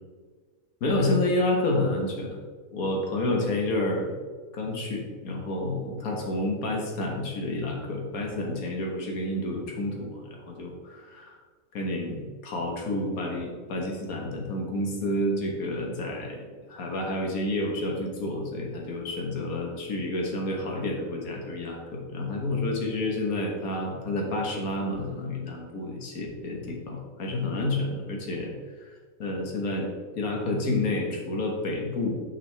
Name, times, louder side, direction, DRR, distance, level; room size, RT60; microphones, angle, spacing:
voice 1, 0.8-2.4 2.7-4.2 4.5-10.2 10.5-11.4 11.7-28.5 28.8-28.9 29.2-29.9 30.1-32.2, left 2 dB, 85° left, 0 dB, 1.6 m, -29 dB
5.9 x 5.9 x 3.2 m, 1.5 s
omnidirectional pair, 1.5 m